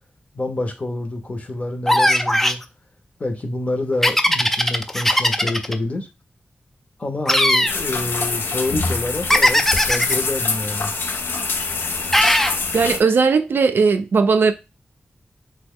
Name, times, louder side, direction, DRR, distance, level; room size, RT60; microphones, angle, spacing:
voice 1, 0.3-2.6 3.2-6.1 7.0-10.9, left 2 dB, 40° left, 0.7 m, -27 dB
sound 1, 1.9-2.6 4.0-5.7 7.3-7.8 9.3-10.1 12.1-12.6, left 1 dB, 10° left, 0.3 m, -17 dB
sound 2, 7.6-13.0, left 4 dB, 90° left, 0.4 m, -25 dB
voice 2, 12.7-14.5, right 5 dB, 85° right, 0.3 m, -17 dB
3.0 x 2.1 x 3.5 m
wide cardioid pair, 95°, 4 cm